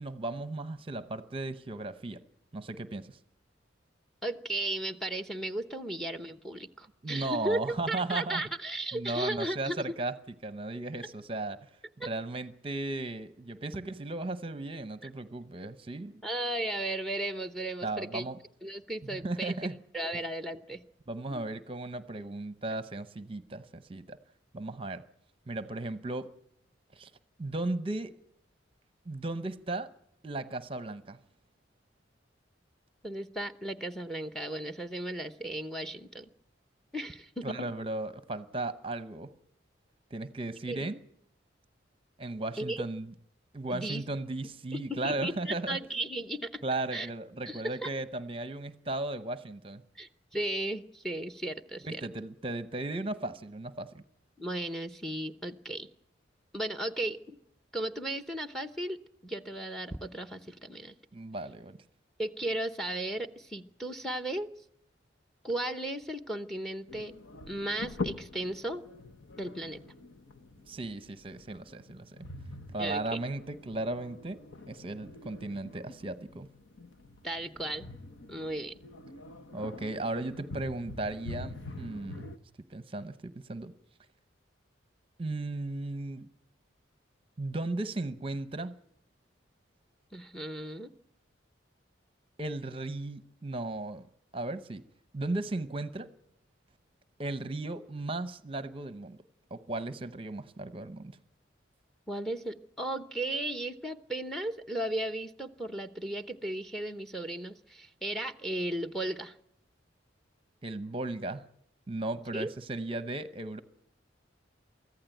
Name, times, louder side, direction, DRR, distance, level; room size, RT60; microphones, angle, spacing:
voice 1, 0.0-2.2 2.5-3.2 7.0-8.4 8.9-10.1 10.4-11.7 12.0-16.2 17.8-18.4 19.1-19.8 21.1-24.2 24.5-25.0 25.5-26.3 26.9-27.1 27.4-28.2 29.1-29.9 30.2-31.2 37.4-39.3 40.1-41.0 42.2-43.1 43.5-45.8 46.6-49.8 51.8-54.0 61.1-61.8 70.7-72.3 72.7-74.4 74.7-76.5 79.5-82.3 82.7-83.7 85.2-86.3 87.4-88.7 92.4-94.1 94.3-94.8 95.1-96.1 97.2-99.2 99.5-101.2 110.6-111.4 111.9-113.6, right 2 dB, 30° right, 0.8 m, -36 dB
voice 2, 4.2-9.9 12.0-12.1 15.0-15.1 16.2-18.2 18.6-20.8 21.3-21.5 33.0-36.3 36.9-37.7 40.7-40.8 42.6-42.9 43.7-44.0 44.7-46.6 46.9-47.1 47.5-47.9 50.0-52.1 54.4-55.9 56.5-57.4 57.7-59.0 59.2-61.0 62.2-64.5 65.4-67.1 67.5-68.9 69.4-69.8 72.8-73.2 77.2-77.9 78.3-78.8 90.1-90.9 102.1-109.4 112.3-112.5, right 1 dB, ahead, 0.8 m, -35 dB
sound 1, 66.9-82.4, left 2 dB, 75° left, 1.1 m, -44 dB
24.0 x 14.5 x 9.1 m
head